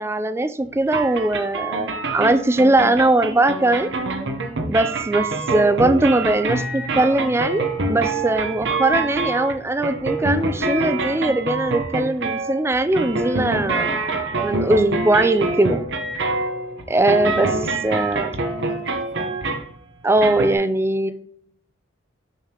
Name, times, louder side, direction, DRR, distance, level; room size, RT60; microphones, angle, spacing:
voice 1, 0.0-3.9 4.7-14.0 14.4-15.8 16.9-18.3 20.0-21.1, right 2 dB, 15° right, 0.3 m, -20 dB
sound 1, 0.9-19.8 20.2-20.5, right 3 dB, 60° right, 0.9 m, -25 dB
voice 2, 18.5-19.4, right 1 dB, 40° left, 1.0 m, -40 dB
6.7 x 6.4 x 3.0 m
head